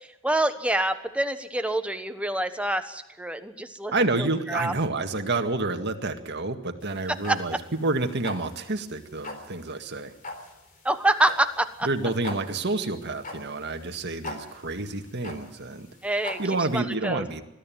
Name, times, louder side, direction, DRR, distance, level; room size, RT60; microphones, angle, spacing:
voice 1, 0.2-3.9 4.2-4.7 7.3-7.4 10.8-11.9 16.0-16.4 16.7-17.2, right 1 dB, 5° right, 8 dB, 1.2 m, -26 dB
voice 2, 3.9-10.1 11.8-15.9 16.4-17.4, right 2 dB, 55° right, 5 dB, 1.9 m, -29 dB
sound 1, 6.8-16.8, left 2 dB, 40° left, 3.7 m, -41 dB
21.5 x 13.5 x 9.2 m, 0.96 s
head